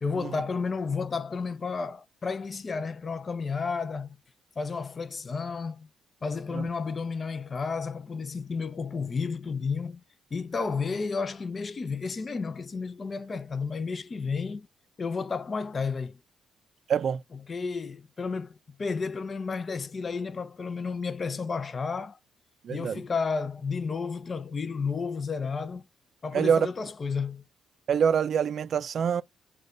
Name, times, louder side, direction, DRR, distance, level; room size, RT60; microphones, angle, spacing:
voice 1, 0.0-4.1 4.6-5.9 6.2-10.0 10.3-14.7 15.0-16.2 17.3-22.2 22.7-25.8 26.2-27.4, left 5 dB, 35° left, 0.5 m, -32 dB
voice 2, 16.9-17.2 22.6-23.0 26.3-26.7 27.9-29.2, right 7 dB, 55° right, 0.3 m, -25 dB
6.3 x 2.3 x 2.5 m
cardioid pair, 90°, 0 cm